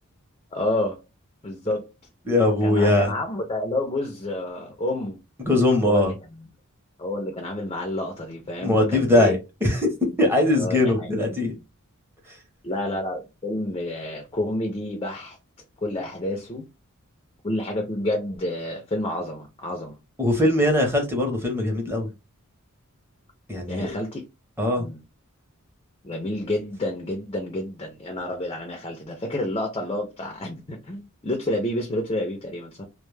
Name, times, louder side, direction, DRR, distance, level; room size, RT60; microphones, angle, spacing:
voice 1, 0.5-1.0 1.4-1.9 2.6-5.2 5.8-6.5 7.0-9.4 10.4-11.1 12.6-15.4 15.8-16.6 17.4-20.0 23.7-24.3 24.7-25.0 26.0-32.8, left 1 dB, 25° left, 0.4 m, -29 dB
voice 2, 2.3-3.1 5.4-6.1 8.6-9.9 10.2-11.5 20.2-22.1 23.5-23.9 24.6-24.9, left 1 dB, 10° right, 0.7 m, -21 dB
2.1 x 2.0 x 3.1 m
head